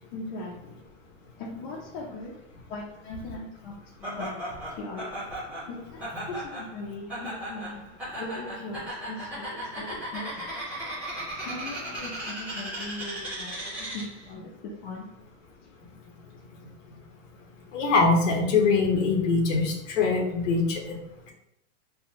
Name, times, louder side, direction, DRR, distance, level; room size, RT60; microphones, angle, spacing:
voice 1, 0.1-0.9 1.4-2.3 2.7-5.1 5.7-7.9 8.2-10.7 11.4-15.1, left 2 dB, 40° left, -5 dB, 0.6 m, -39 dB
Laughter, 4.0-14.3, right 1 dB, 5° right, 0.9 m, -36 dB
voice 2, 17.7-21.0, left 4 dB, 80° left, 1 dB, 0.9 m, -23 dB
3.6 x 2.2 x 2.7 m, 0.82 s
supercardioid pair, 165°, 36 cm